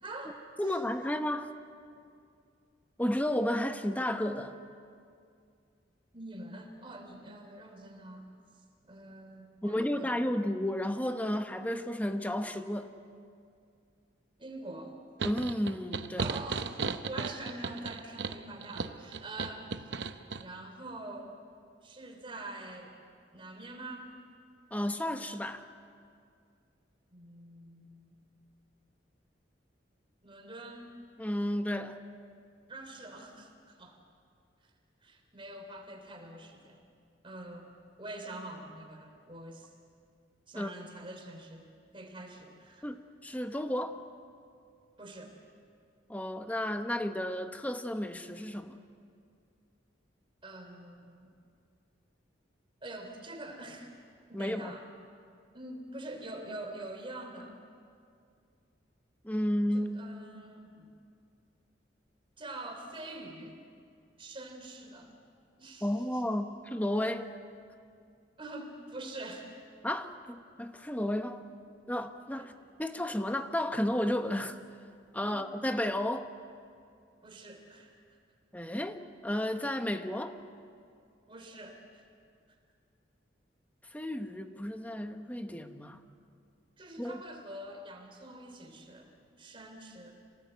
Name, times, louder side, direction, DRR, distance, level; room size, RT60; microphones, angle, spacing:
voice 1, 0.0-0.4 0.6-0.8 6.1-8.3 8.9-10.2 14.4-14.9 16.2-16.7 17.1-19.9 20.4-21.3 21.8-22.9 23.3-24.1 27.1-28.1 30.2-30.9 32.7-34.0 35.0-36.8 37.2-39.7 40.5-42.9 45.0-45.3 50.4-51.3 52.8-53.9 54.3-54.8 55.5-57.6 59.7-60.8 62.4-63.6 64.2-65.1 65.6-66.2 68.4-69.5 75.2-75.5 77.2-77.9 81.3-82.0 86.8-89.1 89.4-90.1, right 2 dB, 30° right, 2 dB, 3.4 m, -45 dB
voice 2, 0.6-1.5 3.0-4.6 9.6-12.9 15.2-16.3 24.7-25.6 31.2-32.0 40.5-40.9 42.8-44.0 46.1-48.8 54.3-54.7 59.2-60.0 65.8-67.3 69.8-71.5 71.9-72.5 72.8-74.6 75.1-76.3 78.5-80.4 83.9-86.0 87.0-87.2, left 1 dB, 10° left, 7 dB, 1.0 m, -32 dB
sound 1, 15.2-20.4, right 4 dB, 65° right, 0.8 m, -36 dB
26.5 x 18.5 x 8.1 m, 2.3 s
head